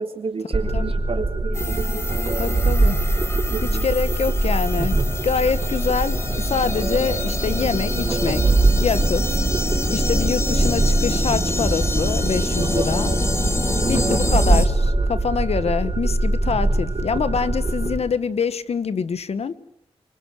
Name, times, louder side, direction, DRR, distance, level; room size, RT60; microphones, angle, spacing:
voice 1, 0.0-2.2 3.5-3.8 13.8-14.1, right 4 dB, 65° right, 5 dB, 3.5 m, -31 dB
sound 1, 0.5-18.0, right 2 dB, 45° right, 4.6 m, -22 dB
sound 2, 1.5-14.7, left 1 dB, 25° left, 2.4 m, -26 dB
voice 2, 2.4-3.0 3.6-5.0 5.2-9.4 9.9-13.1 13.9-19.5, left 6 dB, 75° left, 14 dB, 1.3 m, -25 dB
27.0 x 24.0 x 7.6 m, 0.73 s
wide cardioid pair, 125°, 11 cm